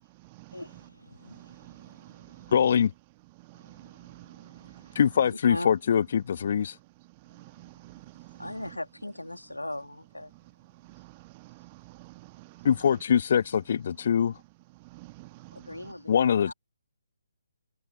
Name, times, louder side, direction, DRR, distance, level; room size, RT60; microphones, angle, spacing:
voice 1, 0.5-2.5 3.5-5.0 5.3-5.7 7.9-8.0 8.3-10.3 15.5-16.5, left 1 dB, 80° left, 3.1 m, -41 dB
voice 2, 1.3-2.5 3.5-4.8 7.3-8.5 10.9-11.1 11.4-12.7 14.9-15.6, right 23 dB, 25° right, 1.6 m, -49 dB
voice 3, 2.5-2.9 4.9-6.7 12.6-14.4 16.1-16.5, left 8 dB, 45° left, 1.6 m, -23 dB
figure-of-eight pair, 140°, 0 cm